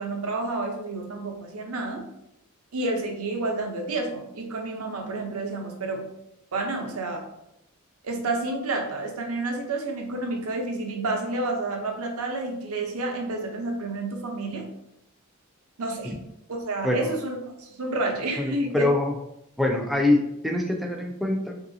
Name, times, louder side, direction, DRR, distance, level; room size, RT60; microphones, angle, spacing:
voice 1, 0.0-2.0 2.7-6.1 6.5-7.2 8.0-14.6 15.8-16.1 16.5-18.8, right 2 dB, 80° right, 2 dB, 0.6 m, -30 dB
voice 2, 18.5-19.1 19.6-21.5, left 2 dB, ahead, 2 dB, 0.3 m, -24 dB
3.1 x 2.6 x 2.6 m, 0.82 s
head